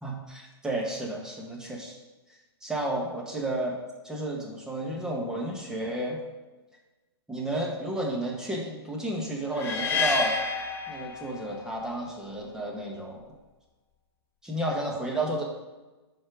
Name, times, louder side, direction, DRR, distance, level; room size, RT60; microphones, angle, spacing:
voice 1, 0.0-2.0 2.6-3.8 4.0-6.2 7.3-10.4 10.9-13.3 14.4-15.4, right 1 dB, 5° right, -2 dB, 1.6 m, -32 dB
sound 1, 9.6-11.7, left 4 dB, 15° left, 1.0 m, -29 dB
11.5 x 4.4 x 4.9 m, 1.2 s
hypercardioid pair, 130°, 14 cm